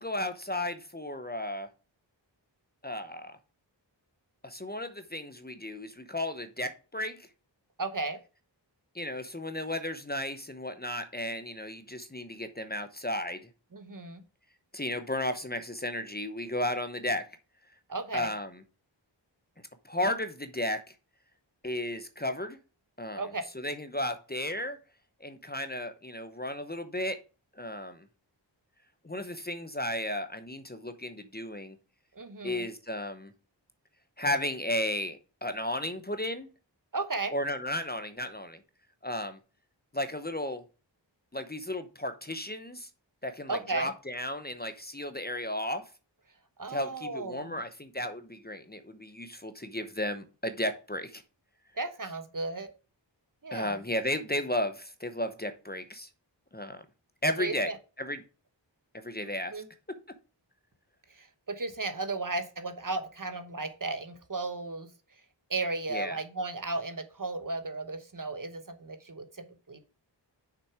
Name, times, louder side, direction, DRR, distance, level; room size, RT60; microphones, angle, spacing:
voice 1, 0.0-1.7 2.8-3.4 4.4-7.3 8.9-13.5 14.7-17.2 18.1-18.5 19.8-20.8 21.6-22.6 23.0-23.2 23.5-24.8 25.2-27.2 27.6-28.1 29.0-31.8 32.4-33.3 34.2-36.5 37.3-38.6 39.0-39.4 39.9-40.6 41.3-42.9 43.2-45.8 46.7-51.2 53.5-56.1 56.5-56.8 57.2-57.7 58.0-58.2 58.9-59.6 65.9-66.2, left 1 dB, 20° left, 9 dB, 0.8 m, -34 dB
voice 2, 7.8-8.2 13.7-14.2 17.9-18.3 23.1-23.4 32.1-32.7 36.9-37.3 43.5-43.9 46.6-47.6 51.7-52.7 53.4-53.8 57.4-57.7 59.5-59.7 61.1-64.9 65.5-69.8, right 3 dB, 45° right, 9 dB, 1.1 m, -35 dB
6.6 x 5.8 x 4.8 m, 0.34 s
wide cardioid pair, 50°, 45 cm